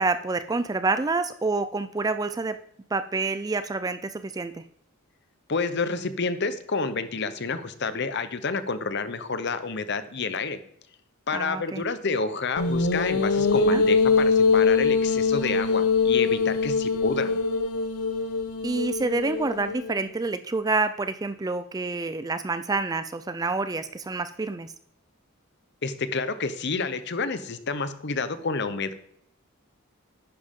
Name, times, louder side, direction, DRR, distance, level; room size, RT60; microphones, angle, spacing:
voice 1, 0.0-2.6 2.9-4.6 11.3-11.8 13.7-13.8 18.6-24.7, right 3 dB, 15° right, 12 dB, 0.3 m, -28 dB
voice 2, 5.5-10.6 11.3-17.4 25.8-28.9, left 4 dB, 50° left, 11 dB, 0.8 m, -29 dB
sound 1, 12.6-20.0, left 4 dB, 80° left, 0.8 m, -23 dB
10.5 x 8.8 x 3.7 m, 0.71 s
head